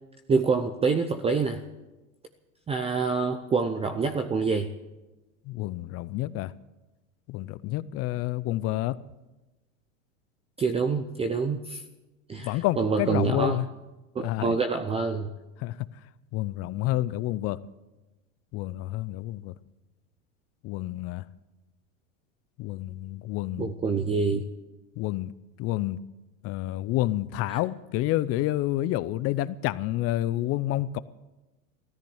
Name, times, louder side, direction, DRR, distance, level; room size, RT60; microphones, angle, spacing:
voice 1, 0.3-1.6 2.7-4.7 10.6-11.8 12.3-13.6 14.1-15.3 23.6-24.4 27.5-27.6, right 4 dB, 15° right, 8 dB, 0.7 m, -26 dB
voice 2, 5.5-6.5 7.3-9.0 12.4-13.7 14.2-14.6 15.6-15.8 16.3-17.6 18.5-19.5 20.6-21.2 22.6-23.7 25.0-25.3 25.6-26.0 26.4-31.0, left 15 dB, 35° left, 18 dB, 0.6 m, -29 dB
14.5 x 13.5 x 7.2 m, 1.1 s
hypercardioid pair, 115°, 41 cm